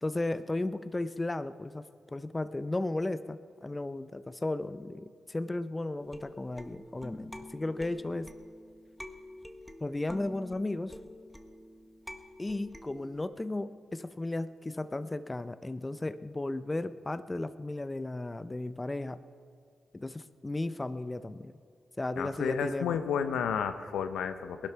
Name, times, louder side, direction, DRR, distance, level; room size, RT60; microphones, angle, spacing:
voice 1, 0.0-8.3 9.8-11.0 12.4-19.2 19.9-21.5 22.0-23.0, left 2 dB, 25° left, 13 dB, 0.6 m, -35 dB
sound 1, 6.0-13.2, left 1 dB, ahead, 1.3 m, -47 dB
voice 2, 22.2-24.7, left 7 dB, 80° left, 9 dB, 0.7 m, -31 dB
19.0 x 11.5 x 4.6 m, 2.3 s
supercardioid pair, 45°, 0 cm